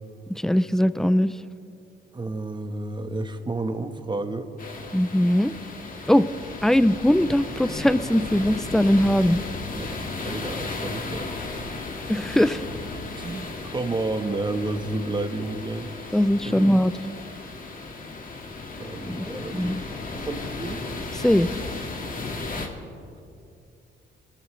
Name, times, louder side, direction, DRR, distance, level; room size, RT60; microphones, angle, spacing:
voice 1, 0.3-1.3 4.9-5.5 6.1-6.3 6.6-9.4 12.1-12.6 16.1-16.9 19.1-19.8 21.2-21.5, equal, ahead, 14 dB, 0.5 m, -20 dB
voice 2, 2.1-4.5 9.7-9.9 10.2-11.3 13.2-16.2 16.4-16.7 18.8-19.8 20.1-20.8, right 2 dB, 25° right, 7 dB, 1.3 m, -31 dB
sound 1, 4.6-22.7, left 3 dB, 45° left, 2.0 m, -35 dB
25.5 x 14.0 x 3.3 m, 2.5 s
cardioid pair, 90°, 20 cm